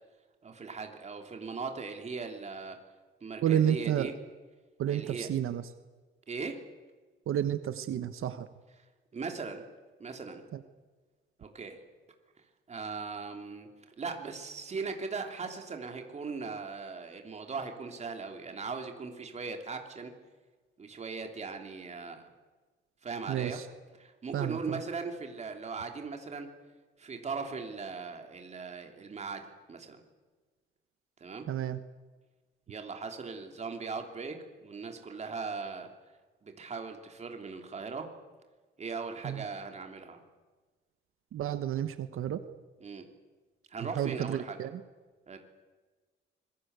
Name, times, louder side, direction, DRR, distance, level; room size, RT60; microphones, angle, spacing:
voice 1, 0.4-2.8 3.2-4.1 4.9-5.3 6.3-6.6 9.1-9.6 10.0-10.4 11.4-11.8 12.7-13.7 14.0-20.1 20.8-22.3 23.0-23.6 24.0-26.5 27.0-29.4 29.7-30.0 31.2-31.4 32.7-35.9 36.4-38.1 38.8-40.2 42.8-43.1 43.7-44.6 45.3-45.4, right 4 dB, 30° right, 4 dB, 3.2 m, -39 dB
voice 2, 3.4-4.1 4.8-5.6 7.3-8.5 10.5-10.6 23.3-23.7 24.3-24.8 31.5-31.8 39.2-39.4 41.3-42.4 43.8-44.8, right 10 dB, 85° right, 11 dB, 1.2 m, -31 dB
25.5 x 22.0 x 8.2 m, 1.4 s
wide cardioid pair, 175°, 21 cm